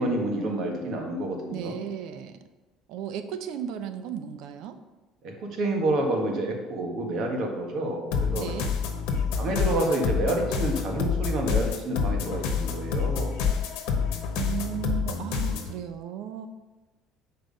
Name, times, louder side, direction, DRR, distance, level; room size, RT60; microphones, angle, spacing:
voice 1, 0.0-1.8 5.2-8.5 9.3-13.4 15.5-15.6, right 1 dB, 55° right, 1 dB, 1.5 m, -28 dB
voice 2, 1.5-2.4 2.9-4.8 8.3-8.7 13.7-13.9 14.3-16.5, right 9 dB, 70° right, 9 dB, 0.7 m, -35 dB
sound 1, 8.1-15.7, left 6 dB, 85° left, 1.0 m, -28 dB
6.6 x 4.7 x 5.3 m, 1.1 s
cardioid pair, 125°, 0 cm